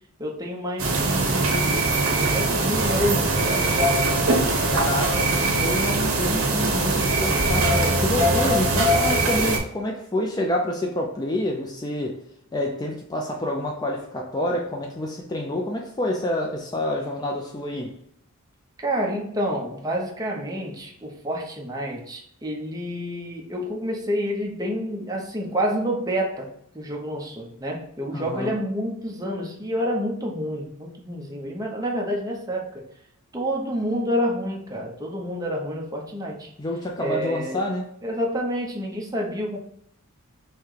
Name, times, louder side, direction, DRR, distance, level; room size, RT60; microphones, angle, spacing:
voice 1, 0.2-4.0 18.8-32.9 33.3-36.5 37.0-37.6 38.0-39.6, equal, 15° right, 0.7 m, -28 dB
sound 1, 0.8-9.6, right 2 dB, 70° right, 1.0 m, -21 dB
voice 2, 4.7-12.2 12.5-18.0 28.1-28.6 36.6-37.9, left 1 dB, 20° left, 0.4 m, -28 dB
5.6 x 2.2 x 3.2 m
head